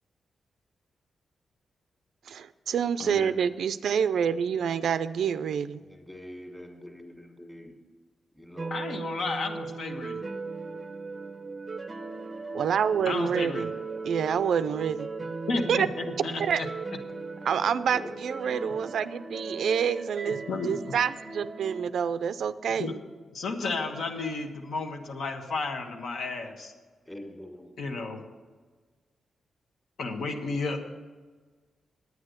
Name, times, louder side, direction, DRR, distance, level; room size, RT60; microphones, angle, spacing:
voice 1, 2.3-5.8 12.5-13.7 14.0-15.1 15.7-15.9 16.4-16.6 17.5-22.9, right 7 dB, 75° right, 14 dB, 0.4 m, -27 dB
voice 2, 3.0-3.3 8.7-10.2 13.0-13.7 15.5-16.7 20.3-20.9 22.7-22.9 23.3-26.7 27.8-28.2 30.0-30.8, left 3 dB, 65° left, 4 dB, 1.2 m, -33 dB
voice 3, 5.8-7.7 8.4-8.7 17.9-18.1 27.1-27.7, left 1 dB, 10° left, 2 dB, 1.7 m, -44 dB
sound 1, 8.6-21.8, right 3 dB, 25° right, 0.6 m, -38 dB
9.7 x 9.3 x 6.6 m, 1.4 s
wide cardioid pair, 155°, 0 cm